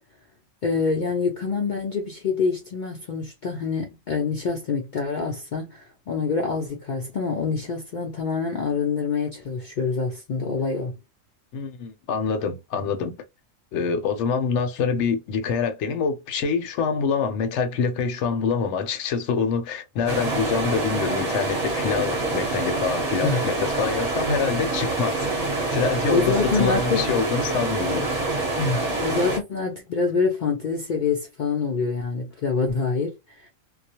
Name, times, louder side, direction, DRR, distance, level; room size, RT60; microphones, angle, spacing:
voice 1, 0.6-11.0 23.2-23.4 26.1-27.1 28.6-33.5, left 4 dB, 85° left, 0.4 m, -26 dB
voice 2, 11.5-13.2 13.7-28.1, left 5 dB, 70° left, 0.8 m, -26 dB
sound 1, 20.1-29.4, right 2 dB, 35° right, 0.9 m, -26 dB
2.3 x 2.0 x 2.7 m
omnidirectional pair, 1.4 m